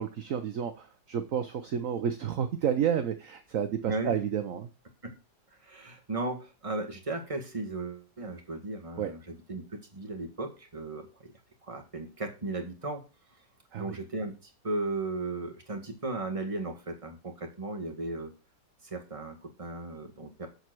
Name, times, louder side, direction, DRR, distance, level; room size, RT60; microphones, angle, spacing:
voice 1, 0.0-4.7 9.0-9.1 13.7-14.0, right 8 dB, 55° right, 8 dB, 1.1 m, -30 dB
voice 2, 3.9-4.2 5.0-5.2 5.6-9.6 9.9-11.3 11.6-13.0 13.8-18.3 18.8-20.5, right 2 dB, 20° right, 4 dB, 1.8 m, -36 dB
7.8 x 6.9 x 6.1 m, 0.31 s
omnidirectional pair, 1.9 m